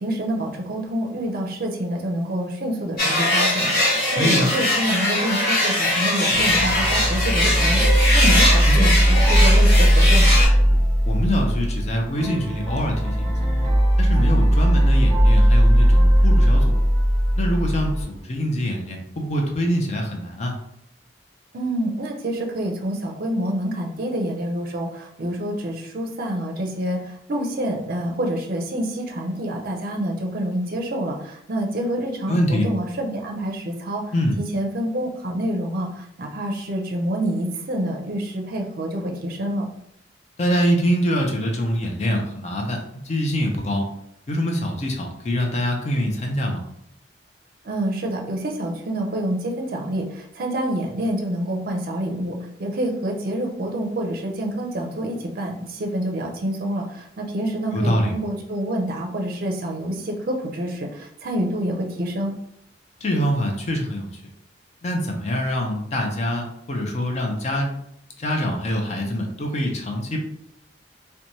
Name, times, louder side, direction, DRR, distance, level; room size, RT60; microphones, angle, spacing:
voice 1, 0.0-10.4 21.5-39.7 47.6-62.4, right 1 dB, 55° right, 2 dB, 0.5 m, -27 dB
sound 1, 3.0-10.5, left 1 dB, 55° left, 1.3 m, -21 dB
voice 2, 4.2-4.5 8.6-8.9 11.1-13.3 14.0-16.7 17.3-20.6 32.3-32.7 34.1-34.4 40.4-43.8 44.3-46.6 57.7-58.1 63.0-64.2 64.8-67.7 68.2-70.2, equal, 40° left, 2 dB, 0.5 m, -24 dB
sound 2, 6.3-18.0, equal, 10° left, 1.1 m, -18 dB
3.0 x 2.1 x 2.6 m, 0.73 s
head